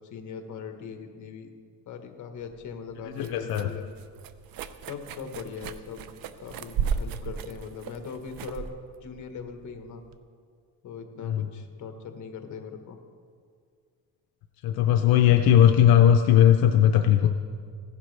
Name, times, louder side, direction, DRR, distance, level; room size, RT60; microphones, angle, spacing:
voice 1, 0.0-1.5 1.9-3.9 4.9-6.1 6.4-8.7 9.0-10.0 10.8-13.0, left 6 dB, 55° left, 5 dB, 1.3 m, -40 dB
sound 1, 2.4-10.2, right 7 dB, 75° right, 0.6 m, -36 dB
voice 2, 3.2-3.7 11.2-11.5 14.6-17.3, left 10 dB, 80° left, 5 dB, 0.6 m, -18 dB
16.0 x 11.0 x 3.3 m, 2.1 s
cardioid pair, 130°, 35 cm